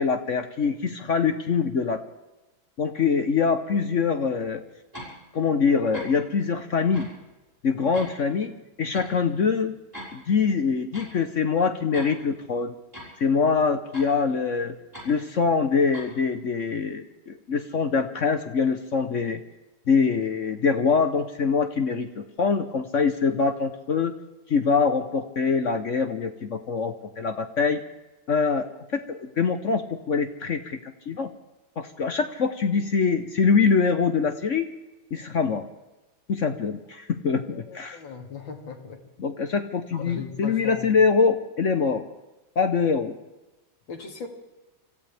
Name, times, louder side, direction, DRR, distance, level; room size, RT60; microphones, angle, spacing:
voice 1, 0.0-2.0 2.8-4.6 5.3-7.1 7.6-9.7 10.1-12.7 13.2-14.8 15.0-19.4 19.9-24.1 24.5-27.8 28.3-28.7 28.9-31.3 31.8-34.7 35.1-35.6 36.3-38.0 39.2-42.0 42.6-43.1, left 5 dB, 50° left, 8 dB, 1.0 m, -24 dB
sound 1, 4.9-5.2 5.9-6.2 6.9-7.1 7.9-8.1 8.9-9.1 9.9-10.1 10.9-11.1 11.9-12.1 12.9-13.1 13.9-14.1 14.9-15.1 15.9-16.1, equal, 10° right, 5.9 m, -40 dB
voice 2, 37.4-39.0 39.9-40.9 43.9-44.3, left 5 dB, 70° left, 2 dB, 3.1 m, -38 dB
26.0 x 15.5 x 3.5 m, 1.0 s
omnidirectional pair, 2.2 m